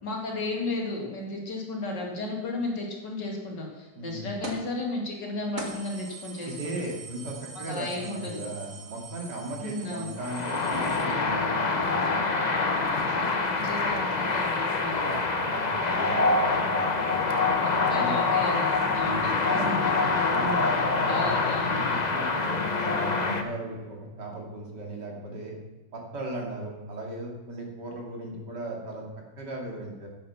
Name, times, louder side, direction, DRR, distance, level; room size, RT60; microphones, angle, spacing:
voice 1, 0.0-6.9 7.7-8.5 9.6-10.1 12.8-15.2 17.0-20.0 21.1-21.9, left 2 dB, 75° left, 0 dB, 3.0 m, -34 dB
voice 2, 3.9-4.3 6.4-12.0 15.3-17.1 17.6-18.2 18.8-19.7 20.3-21.3 21.7-25.5 25.9-29.0 29.4-30.1, right 2 dB, 70° right, -1 dB, 3.1 m, -37 dB
sound 1, 4.4-4.7 5.1-5.2 5.6-11.0, right 4 dB, 50° right, 1.9 m, -42 dB
sound 2, 10.2-23.4, left 3 dB, 30° left, 0.8 m, -25 dB
11.0 x 8.7 x 5.7 m, 1.2 s
omnidirectional pair, 1.9 m